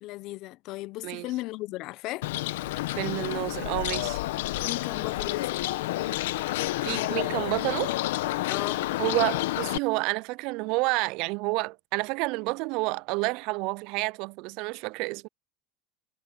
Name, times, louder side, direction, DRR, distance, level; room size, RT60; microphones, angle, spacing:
voice 1, 0.0-2.3 4.6-5.6 8.5-8.9, left 18 dB, 55° left, 0.7 m, -36 dB
Bird, 2.2-9.8, left 17 dB, 80° left, 0.9 m, -29 dB
voice 2, 2.9-4.2 6.8-7.9 9.0-15.3, right 26 dB, 65° right, 0.3 m, -29 dB
supercardioid pair, 110°, 0 cm